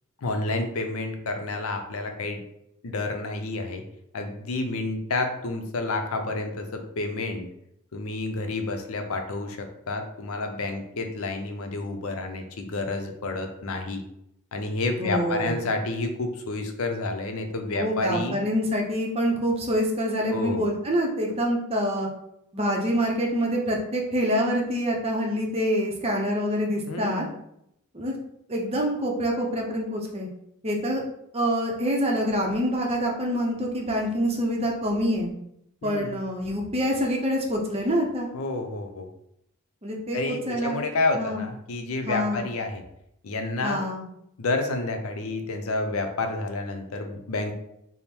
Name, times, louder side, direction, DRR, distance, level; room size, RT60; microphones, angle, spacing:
voice 1, 0.2-2.4 2.8-3.8 4.1-7.5 7.9-14.0 14.5-18.4 20.3-20.7 26.9-27.3 35.8-36.2 38.3-39.1 40.1-42.8 43.2-43.9 44.4-47.5, left 2 dB, 70° left, 5 dB, 0.6 m, -29 dB
voice 2, 15.0-15.6 17.7-22.1 22.5-27.2 27.9-28.2 28.5-30.3 30.6-31.0 31.3-35.3 35.8-38.3 39.8-40.9 41.1-41.4 42.1-42.4 43.6-44.0, equal, 25° right, 0 dB, 0.6 m, -26 dB
3.5 x 2.0 x 4.3 m, 0.77 s
head